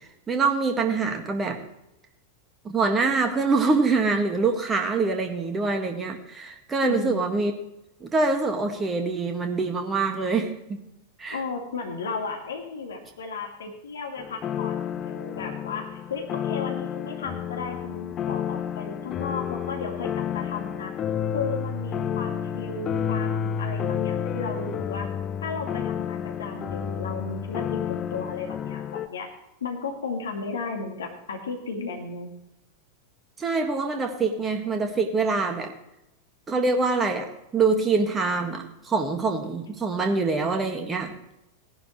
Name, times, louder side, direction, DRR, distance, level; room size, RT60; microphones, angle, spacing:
voice 1, 0.3-1.6 2.6-7.5 8.0-10.8 11.2-11.4 33.4-35.7 36.5-41.1, right 4 dB, 20° right, 5 dB, 1.8 m, -25 dB
voice 2, 6.8-7.3 11.3-20.9 21.3-25.1 25.4-29.3 29.6-32.3, left 4 dB, 65° left, 2 dB, 2.3 m, -34 dB
sound 1, 14.2-29.1, left 8 dB, 30° left, 0.7 m, -30 dB
17.5 x 11.0 x 3.2 m, 0.87 s
figure-of-eight pair, 90°, 0 cm